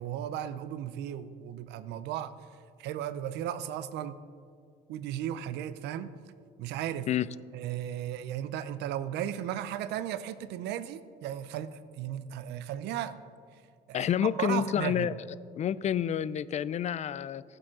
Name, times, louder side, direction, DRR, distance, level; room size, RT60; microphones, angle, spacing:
voice 1, 0.0-2.3 2.8-4.2 4.9-6.1 6.6-7.1 7.5-13.2 14.0-15.1, right 11 dB, 85° right, 13 dB, 0.7 m, -35 dB
voice 2, 13.9-15.1 15.5-17.4, left 9 dB, 40° left, 18 dB, 0.4 m, -29 dB
15.0 x 7.8 x 6.1 m, 2.2 s
cardioid pair, 110°, 17 cm